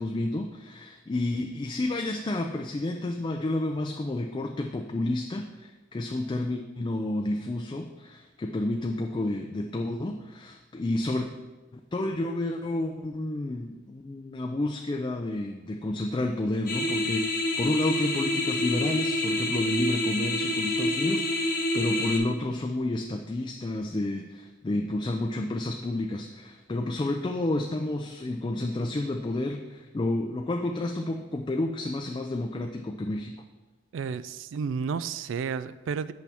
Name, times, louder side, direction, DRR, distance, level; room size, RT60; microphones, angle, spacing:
voice 1, 0.0-11.3 11.7-33.3, left 2 dB, 25° left, 3 dB, 0.4 m, -30 dB
sound 1, 16.7-22.2, left 1 dB, 50° left, 0.9 m, -27 dB
voice 2, 33.9-36.1, right 6 dB, 85° right, 15 dB, 0.3 m, -31 dB
8.4 x 5.6 x 3.5 m, 1.1 s
head